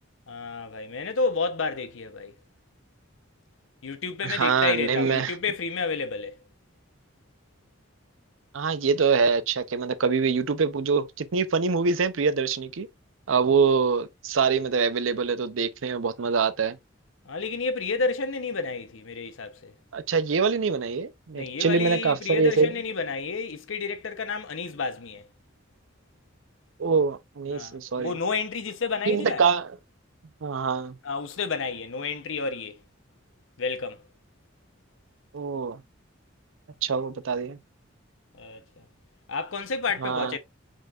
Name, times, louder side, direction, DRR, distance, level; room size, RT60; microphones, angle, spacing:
voice 1, 0.3-2.3 3.8-6.3 17.3-19.7 21.4-25.2 27.5-29.4 31.0-32.8 33.6-34.0 38.3-38.6 39.3-40.4, left 4 dB, 80° left, 0.8 m, -30 dB
voice 2, 4.2-5.4 8.5-12.9 13.3-16.8 19.9-22.7 26.8-28.2 29.1-29.7 30.4-31.0 35.3-35.8 36.8-37.6 40.0-40.4, right 5 dB, 85° right, 0.6 m, -24 dB
4.5 x 4.5 x 2.4 m
head